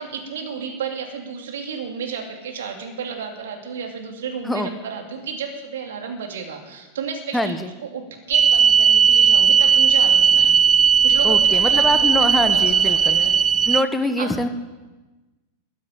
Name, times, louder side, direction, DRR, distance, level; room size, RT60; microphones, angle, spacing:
voice 1, 0.0-10.5 11.0-13.4 14.2-14.3, right 6 dB, 60° right, 3 dB, 2.8 m, -32 dB
voice 2, 7.3-7.7 11.2-13.2 13.6-14.5, left 1 dB, 5° left, 8 dB, 1.2 m, -24 dB
sound 1, 8.3-13.8, right 7 dB, 20° right, 0.4 m, -16 dB
14.0 x 8.9 x 9.0 m, 1.2 s
figure-of-eight pair, 90°, 0 cm